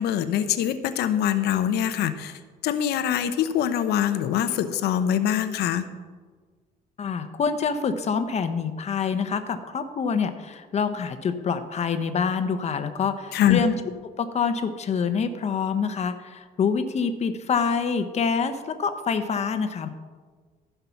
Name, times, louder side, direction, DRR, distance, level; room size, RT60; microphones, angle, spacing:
voice 1, 0.0-5.9 13.3-13.6, left 10 dB, 80° left, 10 dB, 0.9 m, -24 dB
voice 2, 7.0-13.7 14.2-19.9, left 6 dB, 40° left, 9 dB, 1.0 m, -26 dB
15.0 x 5.8 x 5.9 m, 1.5 s
cardioid pair, 110°, 17 cm